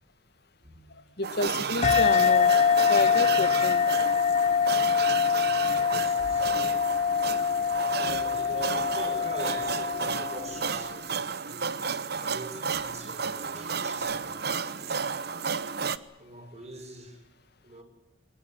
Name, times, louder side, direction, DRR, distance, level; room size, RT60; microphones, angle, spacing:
voice 1, 0.6-1.0 5.4-6.9 7.5-11.8 12.1-15.1 16.2-17.2 17.6-17.8, right 2 dB, 35° right, 6 dB, 6.3 m, -43 dB
voice 2, 1.2-2.5 2.9-3.9, left 2 dB, 60° left, 12 dB, 2.0 m, -30 dB
sound 1, 1.2-16.0, right 5 dB, 60° right, 1.1 m, -32 dB
sound 2, 1.8-10.9, left 7 dB, 40° left, 0.8 m, -24 dB
22.5 x 19.5 x 9.4 m, 0.98 s
head